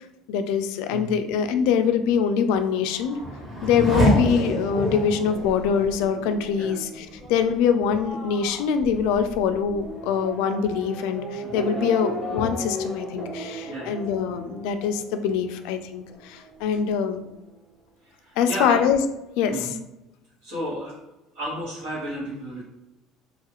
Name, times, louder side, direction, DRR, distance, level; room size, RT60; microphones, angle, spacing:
voice 1, 0.3-3.2 3.6-17.2 18.4-19.0 19.4-19.8, left 7 dB, 75° left, 8 dB, 0.3 m, -24 dB
Race car auto racing / Accelerating revving vroom, 2.5-15.7 16.1-16.8, equal, 30° right, 1.2 m, -30 dB
voice 2, 11.4-11.8 13.6-14.0 18.0-18.7 19.4-19.8 20.4-20.9 21.3-22.6, right 1 dB, 85° right, -11 dB, 1.4 m, -33 dB
2.9 x 2.4 x 2.9 m, 0.94 s
cardioid pair, 150°, 0 cm